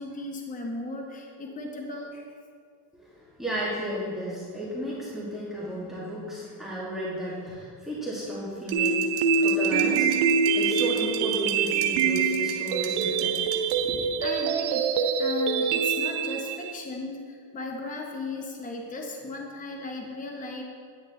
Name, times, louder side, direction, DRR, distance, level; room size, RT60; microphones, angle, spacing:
voice 1, 0.0-2.3 14.2-20.6, left 2 dB, 15° left, 1 dB, 1.0 m, -36 dB
voice 2, 3.0-10.2 10.5-14.0, equal, ahead, -8 dB, 2.2 m, -33 dB
sound 1, 8.7-13.8, right 7 dB, 30° right, 0.8 m, -42 dB
sound 2, 8.7-16.7, right 6 dB, 80° right, 0.8 m, -25 dB
9.8 x 9.3 x 3.2 m, 2.1 s
cardioid pair, 130°, 48 cm